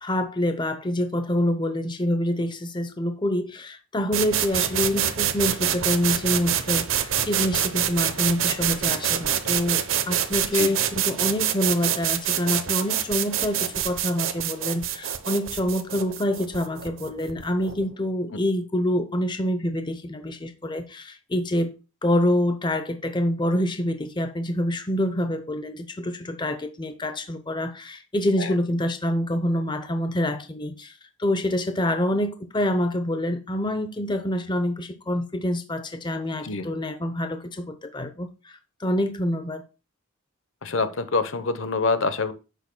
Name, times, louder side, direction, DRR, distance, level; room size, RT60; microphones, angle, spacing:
voice 1, 0.0-21.7 22.0-30.9 31.2-39.6, left 1 dB, 20° left, 0.7 m, -26 dB
sound 1, 4.1-17.8, right 10 dB, 65° right, 0.8 m, -26 dB
voice 2, 40.6-42.3, left 4 dB, 65° left, 0.9 m, -26 dB
10.5 x 8.1 x 2.2 m
head